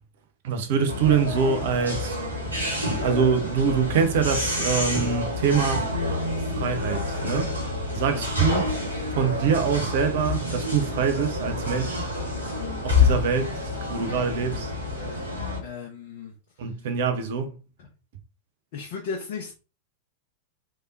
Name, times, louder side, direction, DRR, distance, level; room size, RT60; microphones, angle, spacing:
voice 1, 0.4-2.2 3.0-5.9 6.5-7.5 7.9-8.7 9.2-12.1 12.8-13.6 13.9-14.7 16.6-17.5, right 6 dB, 55° right, 0.6 m, -24 dB
sound 1, 0.9-15.6, left 2 dB, 80° right, 0.9 m, -28 dB
Bass guitar, 5.9-12.2, left 3 dB, 90° left, 0.4 m, -36 dB
voice 2, 15.6-16.3 17.8-17.9 18.7-19.5, left 5 dB, 50° left, 0.7 m, -35 dB
3.2 x 2.8 x 2.5 m
figure-of-eight pair, 90°, 0 cm